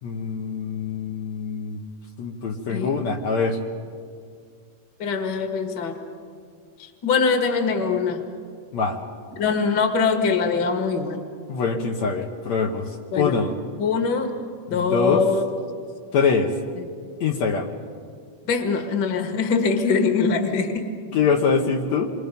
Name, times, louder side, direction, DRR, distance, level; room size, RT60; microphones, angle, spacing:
voice 1, 0.0-1.8 2.2-3.6 8.7-9.0 11.5-12.9 13.2-13.5 14.7-15.2 16.1-16.5 17.2-17.7 21.1-22.1, left 5 dB, 65° left, 1 dB, 2.3 m, -23 dB
voice 2, 5.0-6.0 6.8-8.2 9.4-11.2 13.1-13.4 13.8-14.3 14.7-15.4 16.8-16.9 18.4-20.9, left 5 dB, 40° left, 5 dB, 1.9 m, -23 dB
28.0 x 23.5 x 5.3 m, 2.2 s
omnidirectional pair, 3.7 m